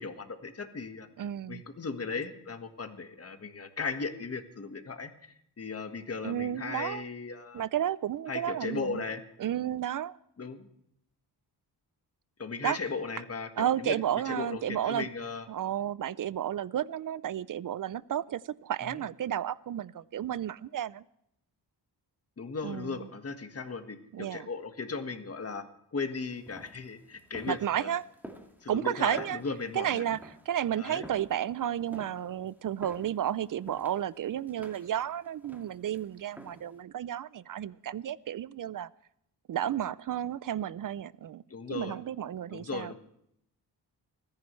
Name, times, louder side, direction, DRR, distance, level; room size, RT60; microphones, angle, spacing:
voice 1, 0.0-1.1 1.5-7.6 8.3-9.2 10.4-10.7 12.4-14.0 14.2-15.5 18.8-19.0 22.4-25.6 25.9-27.9 28.6-30.0 30.8-31.1 41.5-42.0 42.5-42.9, left 4 dB, 35° left, 6 dB, 1.6 m, -37 dB
voice 2, 1.2-1.6 6.2-7.0 7.5-9.0 9.4-10.2 12.6-12.8 13.6-15.1 15.5-21.0 22.6-23.0 24.1-24.5 27.5-28.0 28.7-29.4 29.7-30.2 30.5-38.9 39.5-41.4 41.7-42.9, right 10 dB, 50° right, 20 dB, 0.5 m, -32 dB
sound 1, 26.2-36.8, equal, 5° right, 2.0 m, -51 dB
29.5 x 10.5 x 3.2 m, 0.75 s
cardioid pair, 85°, 41 cm